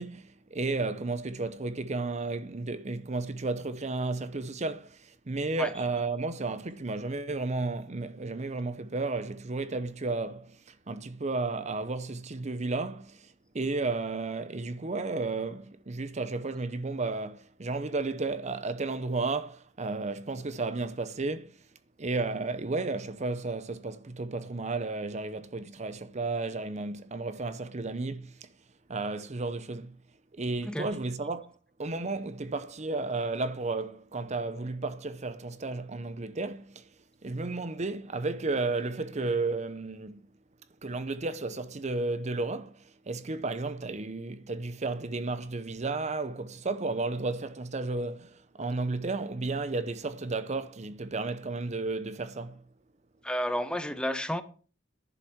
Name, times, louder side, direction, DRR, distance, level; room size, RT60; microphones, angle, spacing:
voice 1, 0.0-21.6 22.0-28.5 28.9-30.0 30.3-36.8 37.2-40.2 40.8-52.6, right 3 dB, 35° right, 0.7 m, -33 dB
voice 2, 53.2-54.4, equal, 5° left, 0.9 m, -31 dB
11.0 x 7.3 x 7.2 m
head